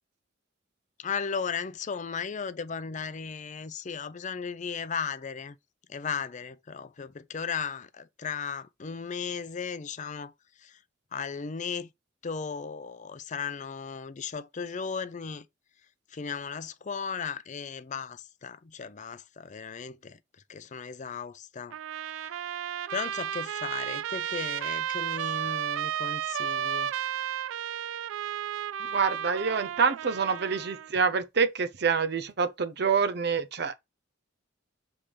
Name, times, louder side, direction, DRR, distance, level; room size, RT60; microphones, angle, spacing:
voice 1, 1.0-5.6 5.9-10.3 10.6-10.8 11.1-11.9 12.2-15.5 16.1-20.2 20.5-21.8 22.9-26.9, left 6 dB, 40° left, 0.5 m, -36 dB
Trumpet, 21.7-30.9, right 9 dB, 90° right, 0.3 m, -33 dB
voice 2, 28.8-33.7, right 5 dB, 60° right, 0.7 m, -26 dB
7.1 x 3.4 x 5.0 m
head